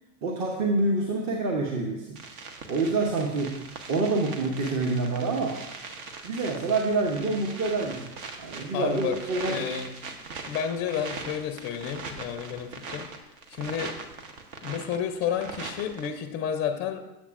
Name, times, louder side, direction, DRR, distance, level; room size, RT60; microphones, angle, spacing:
voice 1, 0.2-2.2 2.7-3.6 3.9-5.6 6.2-8.1 8.4-9.7, right 3 dB, 35° right, 1 dB, 0.9 m, -27 dB
sound 1, 2.2-16.1, right 4 dB, 60° right, 1.1 m, -41 dB
voice 2, 8.7-9.2 9.5-9.9 10.5-13.1 13.5-14.0 14.6-17.1, left 8 dB, 25° left, 7 dB, 0.4 m, -31 dB
8.1 x 7.1 x 2.5 m, 0.94 s
hypercardioid pair, 105°, 47 cm